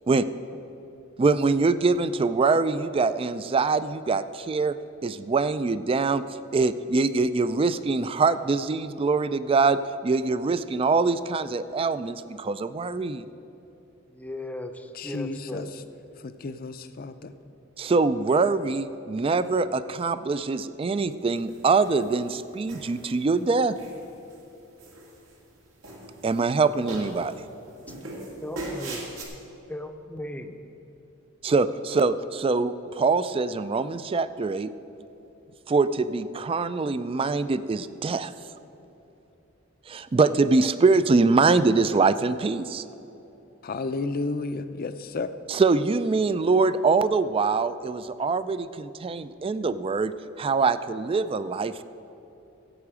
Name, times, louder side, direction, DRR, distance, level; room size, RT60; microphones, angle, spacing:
voice 1, 1.2-4.7 5.0-6.2 6.5-13.2 17.8-23.8 26.2-27.3 31.4-34.7 35.7-38.3 39.9-42.8 45.5-51.8, right 4 dB, 25° right, 14 dB, 0.3 m, -24 dB
voice 2, 14.1-15.7 28.4-29.0 29.7-30.6, left 1 dB, 10° left, 7 dB, 0.6 m, -37 dB
voice 3, 14.9-15.7 16.2-17.3 43.6-45.3, left 3 dB, 45° left, 11 dB, 0.5 m, -32 dB
sound 1, 21.5-22.1 22.7-23.3 23.8-24.4 24.8-25.6 25.8-26.6 26.9-27.4 27.9-29.2, right 1 dB, 80° right, 2.0 m, -39 dB
15.0 x 8.3 x 5.0 m, 2.9 s
head